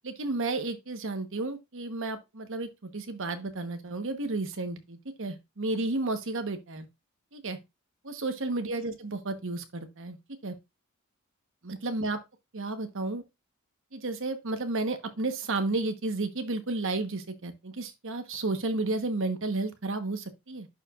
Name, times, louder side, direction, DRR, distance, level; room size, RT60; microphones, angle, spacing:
voice 1, 0.0-6.9 7.3-7.6 8.0-10.2 10.4-10.5 11.6-12.2 12.5-13.2 13.9-20.7, right 2 dB, 60° right, 1.2 m, -32 dB
11.0 x 4.8 x 2.4 m
head